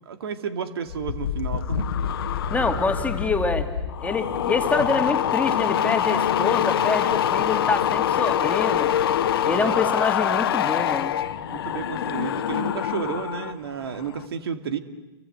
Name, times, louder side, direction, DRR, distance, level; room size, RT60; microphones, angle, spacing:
voice 1, 0.1-1.9 6.5-6.7 9.4-9.8 11.5-14.8, right 7 dB, 75° right, 9 dB, 2.3 m, -32 dB
sound 1, 0.9-13.5 13.8-14.3, left 10 dB, 65° left, 1.5 m, -25 dB
voice 2, 2.5-3.7 4.0-8.9 9.4-11.2, left 3 dB, 10° left, 6 dB, 2.5 m, -26 dB
30.0 x 24.5 x 8.0 m, 1.1 s
hypercardioid pair, 110°, 13 cm